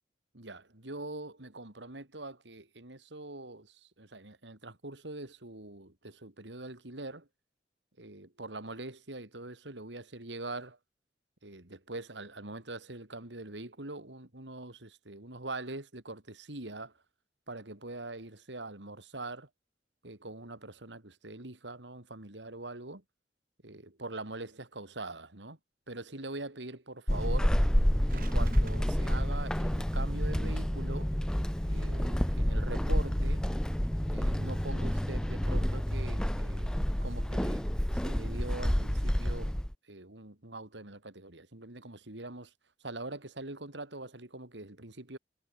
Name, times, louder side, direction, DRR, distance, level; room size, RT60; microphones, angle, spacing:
voice 1, 0.3-7.3 8.0-10.8 11.4-16.9 17.5-19.5 20.0-23.0 23.6-25.6 25.9-27.6 28.1-31.1 31.6-33.5 34.1-39.5 39.9-42.5 42.8-45.2, right 2 dB, 90° right, 3.5 m, -43 dB
Walk footsteps / Squeak, 27.1-39.7, equal, 5° left, 0.4 m, -29 dB
sound 1, 27.7-28.8, right 6 dB, 50° right, 6.2 m, -51 dB
head